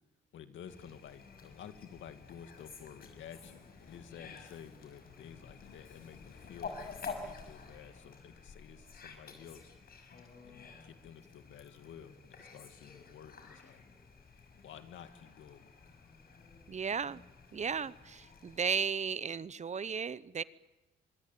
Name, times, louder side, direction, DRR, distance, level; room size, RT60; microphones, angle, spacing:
voice 1, 0.3-9.7 10.4-13.8 14.6-15.7, left 8 dB, 75° left, 9 dB, 2.4 m, -52 dB
Fowl, 0.7-18.7, left 4 dB, 50° left, 6.0 m, -50 dB
Drum kit / Drum, 3.4-7.8, left 6 dB, 90° left, 6.9 m, -61 dB
voice 2, 16.7-17.2 17.5-20.4, right 6 dB, 35° right, 18 dB, 0.8 m, -35 dB
25.0 x 21.5 x 9.2 m, 1.0 s
cardioid pair, 90°, 20 cm